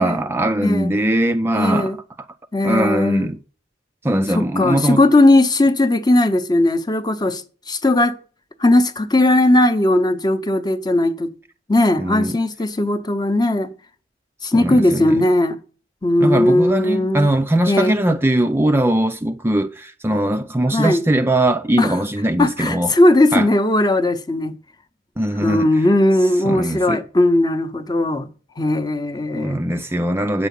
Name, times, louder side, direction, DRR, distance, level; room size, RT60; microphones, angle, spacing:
voice 1, 0.0-1.9 2.6-3.4 4.0-5.0 12.0-12.4 14.5-15.3 16.2-22.9 23.3-23.5 25.2-25.7 26.4-27.0 29.3-30.5, right 1 dB, 10° right, 0.4 m, -20 dB
voice 2, 0.6-0.9 1.5-2.0 2.5-3.3 4.3-8.2 8.6-11.3 11.7-13.7 14.4-15.6 16.0-17.3 17.7-17.9 20.7-21.0 21.8-21.9 22.4-24.5 25.4-28.3 28.6-29.6, left 1 dB, 20° left, 0.7 m, -17 dB
9.2 x 6.9 x 5.3 m
head